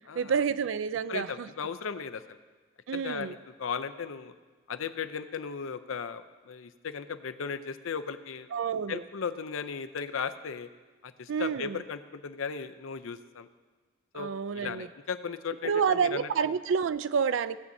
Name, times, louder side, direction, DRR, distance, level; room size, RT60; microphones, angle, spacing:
voice 1, 0.1-1.5 2.9-3.3 8.5-9.0 11.3-11.8 14.1-14.9 15.6-17.6, right 6 dB, 75° right, 15 dB, 0.4 m, -29 dB
voice 2, 1.1-2.4 2.9-4.3 4.7-8.5 8.9-10.7 11.0-13.5 14.1-16.3, left 6 dB, 90° left, 11 dB, 0.5 m, -36 dB
17.0 x 8.3 x 2.7 m, 1.4 s
head